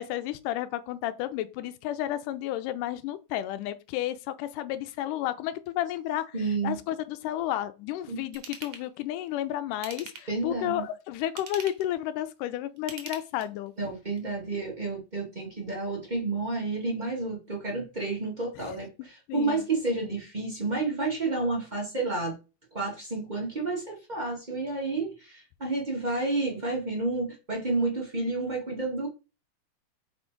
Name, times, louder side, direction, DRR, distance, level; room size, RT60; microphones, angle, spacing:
voice 1, 0.0-6.3 6.6-13.7 19.3-19.7, left 13 dB, 85° left, 2.2 m, -32 dB
voice 2, 6.3-6.8 8.1-8.2 10.3-10.8 13.8-22.4 22.7-29.1, right 3 dB, 35° right, 0.7 m, -30 dB
Ratchet pawl / Tools, 8.3-8.8 9.7-10.4 11.2-11.9 12.8-13.7 14.2-14.3, right 7 dB, 65° right, 1.9 m, -42 dB
5.7 x 4.4 x 4.5 m
omnidirectional pair, 3.7 m